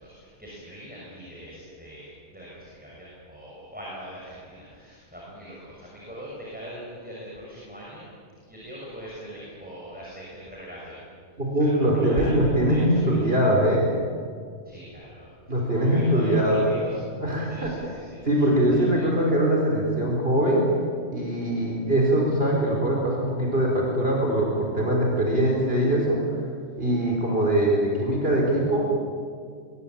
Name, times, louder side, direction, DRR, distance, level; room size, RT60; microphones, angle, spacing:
voice 1, 0.0-8.1 8.5-11.1 11.5-13.3 14.6-17.0 17.4-19.0, equal, 5° right, -5 dB, 6.7 m, -41 dB
voice 2, 11.4-13.9 15.5-16.6 17.2-17.8 18.2-20.6 21.1-26.2 26.8-28.8, right 1 dB, 50° right, -2 dB, 5.0 m, -22 dB
24.0 x 22.0 x 8.8 m, 2.1 s
omnidirectional pair, 1.2 m